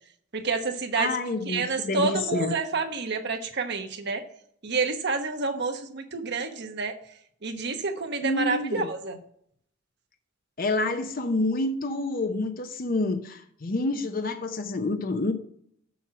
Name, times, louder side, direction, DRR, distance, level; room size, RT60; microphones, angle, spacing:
voice 1, 0.3-1.1 1.5-4.2 4.6-7.0 7.4-9.2, right 4 dB, 60° right, 5 dB, 1.1 m, -29 dB
voice 2, 0.9-2.5 8.2-8.9 10.6-15.3, left 2 dB, 45° left, 7 dB, 0.7 m, -28 dB
7.1 x 6.1 x 6.0 m, 0.67 s
head